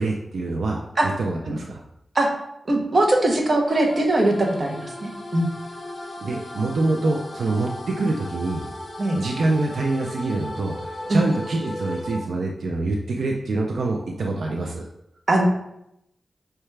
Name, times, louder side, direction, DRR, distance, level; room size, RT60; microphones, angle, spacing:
voice 1, 0.0-1.8 6.2-8.6 9.1-14.9, right 2 dB, 75° right, 0 dB, 0.4 m, -25 dB
voice 2, 2.7-5.5 9.0-9.2 11.1-11.2 15.3-15.5, right 2 dB, 40° right, 1 dB, 0.7 m, -21 dB
sound 1, 3.7-12.2, left 1 dB, 45° left, 0.6 m, -36 dB
5.5 x 2.2 x 3.2 m, 0.81 s
wide cardioid pair, 110°, 0 cm